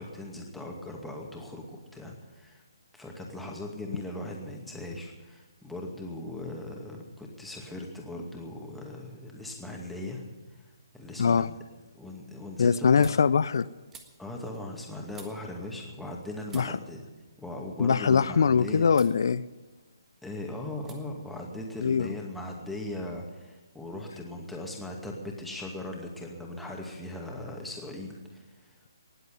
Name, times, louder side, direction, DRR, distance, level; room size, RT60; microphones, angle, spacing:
voice 1, 0.0-2.6 2.9-10.2 10.9-11.6 11.9-13.3 14.2-17.0 17.4-18.9 20.2-28.7, left 1 dB, 5° left, -1 dB, 2.3 m, -39 dB
voice 2, 11.2-11.5 12.6-13.7 16.5-16.8 17.8-19.4 21.8-22.1, left 6 dB, 65° left, 17 dB, 0.5 m, -22 dB
sound 1, 13.0-16.2 16.5-18.5 18.9-19.2 19.6-20.3 20.8-21.0 21.3-22.3, right 5 dB, 15° right, 1.4 m, -56 dB
19.0 x 8.0 x 9.4 m, 1.2 s
figure-of-eight pair, 145°, 2 cm